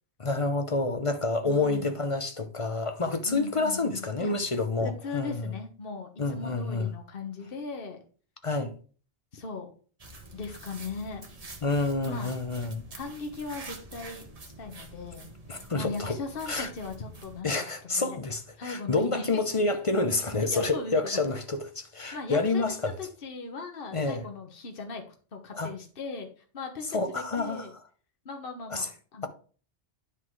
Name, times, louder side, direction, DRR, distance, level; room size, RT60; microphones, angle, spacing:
voice 1, 0.2-5.5 6.2-6.9 8.4-8.8 11.6-12.9 15.5-16.2 16.5-16.7 17.4-22.9 23.9-24.3 25.5-25.7 26.9-27.7 28.7-28.9, left 3 dB, 35° left, 0.7 m, -28 dB
voice 2, 1.4-1.9 3.3-4.3 4.8-8.0 9.3-9.7 10.3-11.2 12.0-12.3 12.9-14.3 14.6-18.2 18.6-19.2 20.5-21.2 22.1-25.0 25.3-26.3 26.5-27.7 28.2-29.3, left 4 dB, 50° left, 1.4 m, -38 dB
sound 1, 10.0-17.4, right 2 dB, 35° right, 1.2 m, -47 dB
9.9 x 4.0 x 4.6 m
omnidirectional pair, 1.2 m